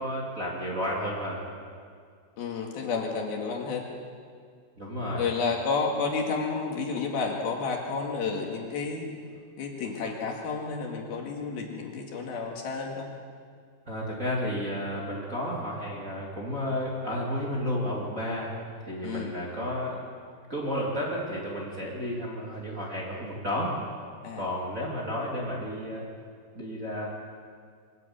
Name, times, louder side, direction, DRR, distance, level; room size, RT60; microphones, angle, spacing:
voice 1, 0.0-1.4 4.8-5.3 13.9-20.0 20.5-23.7 24.3-26.1 26.5-27.1, equal, 20° right, -4 dB, 2.7 m, -32 dB
voice 2, 2.4-3.9 5.2-9.1 9.6-13.1 19.0-19.3 24.2-24.4, left 4 dB, 65° left, 0 dB, 3.7 m, -31 dB
23.5 x 13.5 x 8.8 m, 2.1 s
omnidirectional pair, 4.9 m